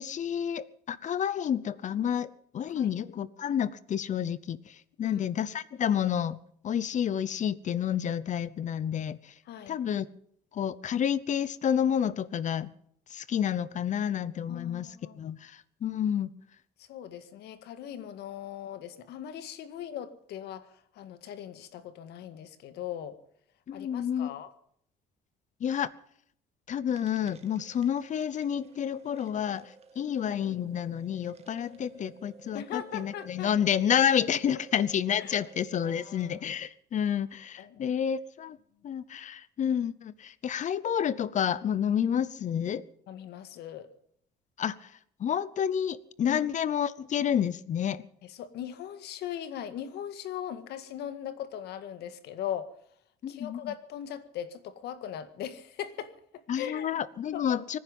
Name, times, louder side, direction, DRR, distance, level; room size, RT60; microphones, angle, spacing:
voice 1, 0.0-6.4 6.6-9.3 9.7-10.1 10.5-12.7 13.1-14.9 15.2-16.3 23.7-24.3 25.6-25.9 26.7-38.6 38.8-42.8 44.6-44.9 45.2-48.0 53.2-53.7 56.5-57.8, left 9 dB, 45° left, 19 dB, 0.8 m, -29 dB
voice 2, 9.5-9.8 14.5-15.2 16.8-23.2 23.7-24.5 32.5-33.5 35.2-35.5 35.8-36.3 37.6-37.9 43.1-43.9 46.3-46.4 48.2-52.7 53.3-56.9 57.3-57.6, left 10 dB, 75° left, 11 dB, 1.9 m, -39 dB
sound 1, 26.9-36.4, right 4 dB, 40° right, 2.1 m, -54 dB
25.0 x 10.5 x 5.5 m, 0.66 s
cardioid pair, 110°, 17 cm